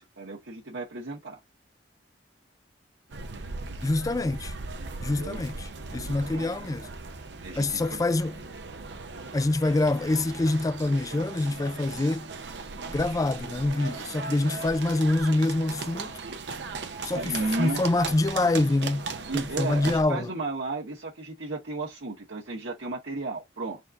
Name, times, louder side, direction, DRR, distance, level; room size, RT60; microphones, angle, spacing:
voice 1, 0.0-1.4 5.0-5.4 5.9-6.5 7.4-8.0 17.1-17.8 19.3-23.8, right 2 dB, 85° right, 1.3 m, -34 dB
sound 1, 3.1-20.0, right 4 dB, 70° right, 0.7 m, -38 dB
voice 2, 3.8-4.5 5.0-6.9 7.6-8.4 9.3-12.3 12.9-16.1 17.0-19.1 19.3-20.3, left 2 dB, 20° left, 0.3 m, -26 dB
4.2 x 2.5 x 3.9 m
head